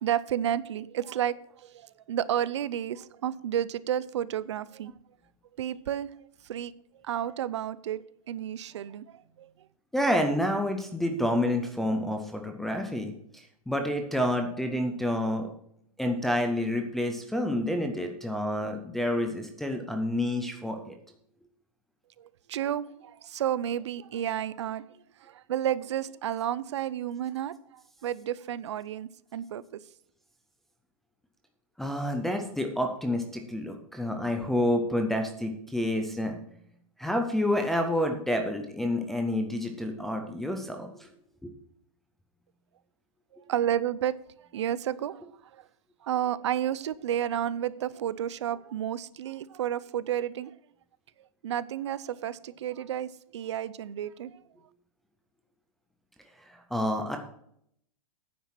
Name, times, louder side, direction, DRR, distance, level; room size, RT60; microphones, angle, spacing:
voice 1, 0.0-4.9 5.6-6.1 6.5-6.7 7.0-9.0 9.4-9.5 22.2-24.8 25.2-29.6 43.5-44.2 44.5-45.2 46.0-50.5 51.4-54.4, right 10 dB, 55° right, 18 dB, 0.6 m, -31 dB
voice 2, 9.9-15.5 16.0-20.9 31.8-36.4 37.0-41.1 56.5-57.2, left 1 dB, ahead, 2 dB, 0.3 m, -29 dB
9.5 x 7.3 x 5.8 m, 0.69 s
supercardioid pair, 175°, 18 cm